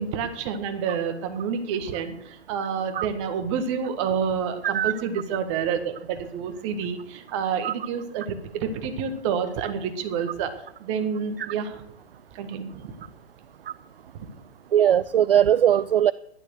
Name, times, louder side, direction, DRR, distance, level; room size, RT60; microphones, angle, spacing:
voice 1, 0.0-11.8 12.3-12.9 14.1-14.3, right 6 dB, 30° right, 8 dB, 1.7 m, -29 dB
voice 2, 14.7-16.1, right 10 dB, 60° right, 18 dB, 0.5 m, -20 dB
13.5 x 11.5 x 6.5 m, 0.79 s
figure-of-eight pair, 120°, 33 cm